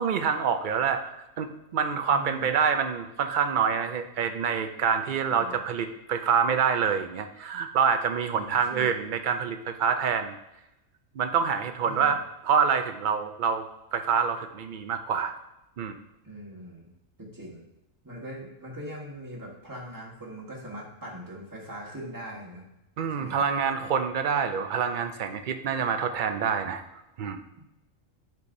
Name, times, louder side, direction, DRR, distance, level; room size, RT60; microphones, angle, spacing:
voice 1, 0.0-10.4 11.2-13.7 13.9-15.3 15.8-16.0 23.0-26.8 27.2-27.4, right 6 dB, 65° right, 7 dB, 0.4 m, -26 dB
voice 2, 2.1-2.5 5.2-5.6 8.3-8.9 11.8-12.2 16.2-16.9 17.2-17.6 18.0-22.7 23.2-23.5 27.5-27.6, equal, 15° right, -4 dB, 1.4 m, -41 dB
9.7 x 4.6 x 2.6 m, 0.92 s
omnidirectional pair, 1.3 m